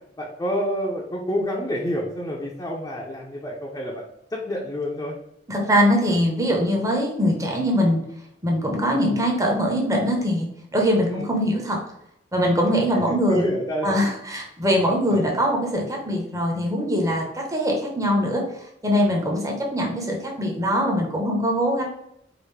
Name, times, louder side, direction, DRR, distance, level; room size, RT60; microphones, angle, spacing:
voice 1, 0.2-5.2 11.1-11.3 12.9-14.0 15.1-15.4, equal, 20° left, -3 dB, 0.5 m, -28 dB
voice 2, 5.5-8.0 8.4-10.5 10.7-11.8 12.3-13.4 13.8-18.4 18.8-21.8, equal, 20° right, 0 dB, 0.8 m, -22 dB
4.9 x 2.5 x 3.1 m, 0.78 s
head